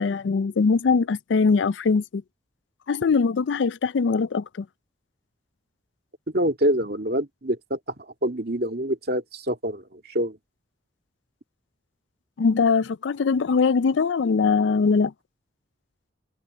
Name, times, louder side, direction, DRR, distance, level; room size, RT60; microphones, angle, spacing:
voice 1, 0.0-2.2 2.9-4.4 12.4-15.1, left 5 dB, 70° left, 0.4 m, -21 dB
voice 2, 6.3-7.8 8.2-10.4, equal, 55° right, 2.6 m, -26 dB
head